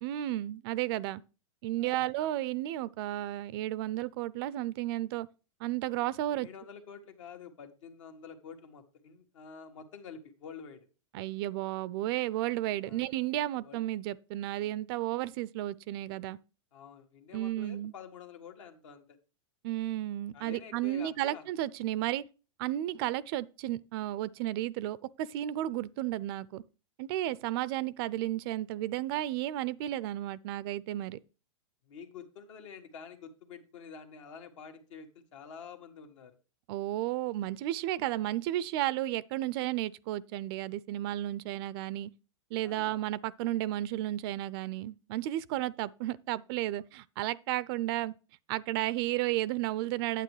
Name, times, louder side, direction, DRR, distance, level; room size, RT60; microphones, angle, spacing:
voice 1, 0.0-1.2 1.6-5.3 5.6-6.5 11.1-16.4 17.3-17.9 19.6-22.2 22.6-26.6 27.0-31.2 36.7-42.1 42.5-48.1 48.5-50.2, right 14 dB, 45° right, 0.4 m, -33 dB
voice 2, 1.8-2.1 6.3-10.9 12.8-13.1 13.6-13.8 16.7-19.2 20.3-21.5 31.8-36.3 42.6-43.0, left 6 dB, 70° left, 1.7 m, -48 dB
9.2 x 8.4 x 3.2 m
hypercardioid pair, 120°, 17 cm